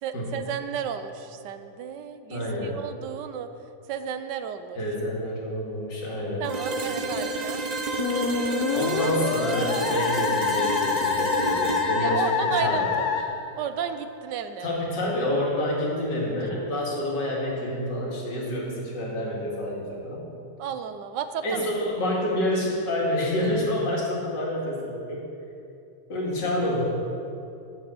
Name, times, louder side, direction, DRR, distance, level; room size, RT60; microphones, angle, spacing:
voice 1, 0.0-3.5 3.9-4.8 6.4-7.6 12.0-13.1 13.6-14.7 20.6-21.7, right 8 dB, 80° right, 10 dB, 1.3 m, -33 dB
voice 2, 2.3-2.8 4.8-6.4 8.7-12.9 14.6-20.3 21.4-25.2 26.1-26.8, left 1 dB, 85° left, -3 dB, 2.6 m, -28 dB
sound 1, 6.4-14.3, right 3 dB, 40° right, 0.6 m, -31 dB
Musical instrument, 8.0-13.2, left 6 dB, 65° left, 1.2 m, -26 dB
8.7 x 6.9 x 7.6 m, 2.7 s
omnidirectional pair, 1.9 m